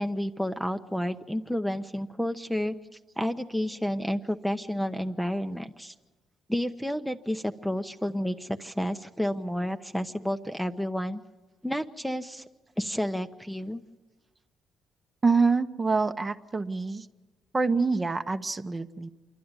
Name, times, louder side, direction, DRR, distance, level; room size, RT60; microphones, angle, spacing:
voice 1, 0.0-2.7 3.2-5.9 6.5-11.2 11.6-12.4 12.8-13.8, equal, ahead, 7 dB, 0.7 m, -30 dB
voice 2, 15.2-17.1 17.5-19.1, right 4 dB, 25° right, 9 dB, 0.9 m, -26 dB
27.0 x 11.5 x 9.6 m, 1.2 s
cardioid pair, 90°, 0 cm